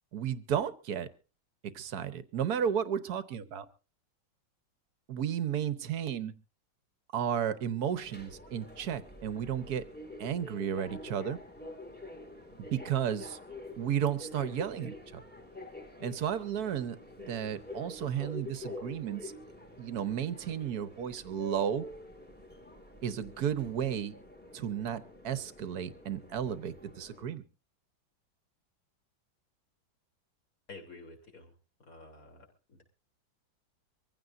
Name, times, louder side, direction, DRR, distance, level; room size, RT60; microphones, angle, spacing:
voice 1, 0.1-1.1 1.7-3.6 5.1-6.3 7.1-9.8 10.2-11.4 12.7-13.4 13.8-15.2 16.0-19.3 19.8-21.8 23.0-24.1 24.5-27.4, right 9 dB, 60° right, 13 dB, 1.3 m, -33 dB
Subway metro underground, 7.9-27.2, left 1 dB, 5° left, 1.8 m, -47 dB
voice 2, 30.7-31.5 31.9-32.5, left 3 dB, 45° left, 3 dB, 3.7 m, -49 dB
24.0 x 15.5 x 2.6 m, 0.33 s
omnidirectional pair, 2.1 m